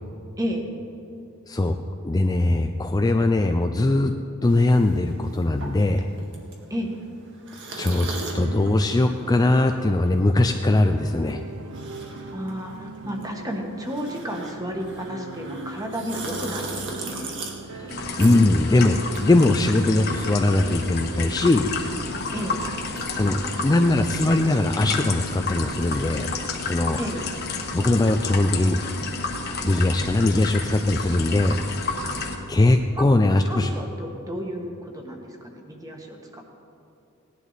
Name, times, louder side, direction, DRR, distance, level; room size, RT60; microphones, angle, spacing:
voice 1, 1.5-4.1 4.4-6.1 7.8-8.1 8.3-11.4 17.7-21.7 23.1-26.3 26.6-27.0 27.7-28.8 29.6-31.6 32.5-33.7, left 2 dB, 15° left, 6 dB, 0.4 m, -21 dB
sound 1, 4.4-20.2 20.5-23.4, right 3 dB, 55° right, 1.8 m, -39 dB
sound 2, 7.9-26.4, right 3 dB, 80° right, 0.6 m, -41 dB
voice 2, 12.3-17.4 22.3-22.6 27.0-27.2 33.0-33.1 33.5-36.4, equal, 15° right, 2 dB, 1.4 m, -32 dB
sound 3, 17.9-32.4, left 4 dB, 50° left, 1.3 m, -31 dB
17.5 x 11.0 x 4.1 m, 2.8 s
head